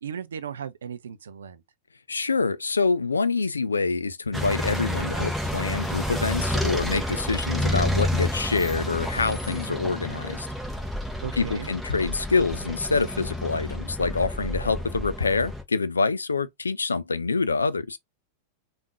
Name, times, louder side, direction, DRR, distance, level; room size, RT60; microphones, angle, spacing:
voice 1, 0.0-1.6 11.2-11.7, right 7 dB, 65° right, 0.4 m, -36 dB
voice 2, 2.1-10.5 11.3-18.0, left 4 dB, 75° left, 0.3 m, -26 dB
sound 1, 4.3-15.6, left 1 dB, ahead, 0.9 m, -29 dB
3.5 x 2.4 x 3.0 m
figure-of-eight pair, 90°, 0 cm